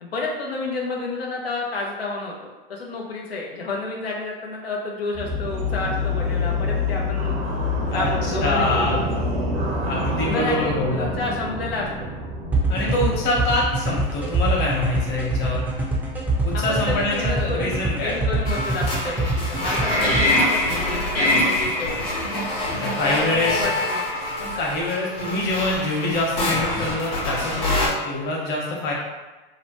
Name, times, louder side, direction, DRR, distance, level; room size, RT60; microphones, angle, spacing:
voice 1, 0.0-7.4 7.9-8.8 10.2-12.1 16.5-22.2 23.0-24.0, left 3 dB, 90° left, -1 dB, 0.5 m, -30 dB
sound 1, 5.1-20.0, left 2 dB, 80° right, 0.8 m, -28 dB
voice 2, 7.9-9.1 9.9-11.1 12.7-15.6 16.4-18.4 19.9-20.0 22.7-23.6 24.4-28.9, left 2 dB, 35° left, -3 dB, 0.9 m, -25 dB
sound 2, 12.5-20.2, right 3 dB, 5° right, 0.4 m, -24 dB
sound 3, 18.5-27.9, left 1 dB, 75° left, 1.0 m, -25 dB
2.8 x 2.0 x 2.8 m, 1.2 s
hypercardioid pair, 110°, 30 cm